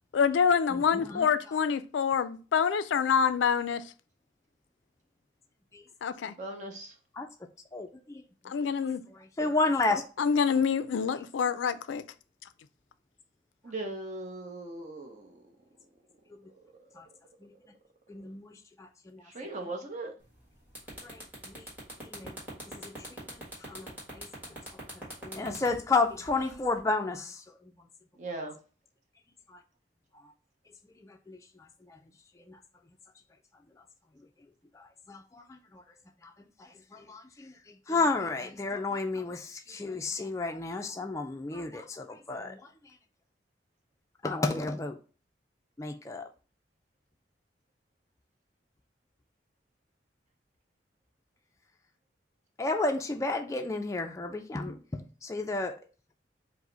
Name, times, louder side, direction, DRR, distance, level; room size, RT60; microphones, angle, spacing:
voice 1, 0.1-3.8 6.0-6.3 8.4-9.0 10.2-12.0, left 6 dB, 90° left, 0.4 m, -26 dB
voice 2, 0.7-1.3 5.7-5.8 7.1-7.3 7.7-8.2 9.1-10.0 16.3-16.4 16.9-17.1 17.4-17.5 18.1-19.3 19.6-19.7 21.0-21.7 22.0-22.4 22.7-27.9 30.2-30.3 31.0-32.0 32.4-32.6 34.7-35.8 36.2-36.3 36.6-42.9 44.2-45.0 45.8-46.3 52.6-55.7, left 3 dB, 15° left, 0.3 m, -33 dB
voice 3, 6.4-6.9 13.6-15.3 19.3-20.1 28.2-28.5, right 2 dB, 40° right, 0.7 m, -38 dB
sound 1, 20.2-20.4 20.7-26.8, right 1 dB, 10° right, 1.6 m, -43 dB
4.8 x 2.1 x 3.8 m
head